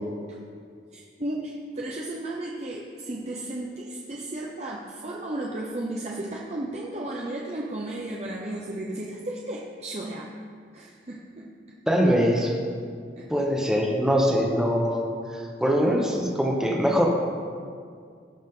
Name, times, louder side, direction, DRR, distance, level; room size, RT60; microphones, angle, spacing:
voice 1, 0.9-10.3 10.7-11.8 13.2-13.3, right 1 dB, 40° right, -2 dB, 0.8 m, -34 dB
voice 2, 11.9-12.5 13.3-17.1, equal, 5° right, -1 dB, 1.1 m, -23 dB
17.5 x 6.3 x 3.8 m, 2.1 s
head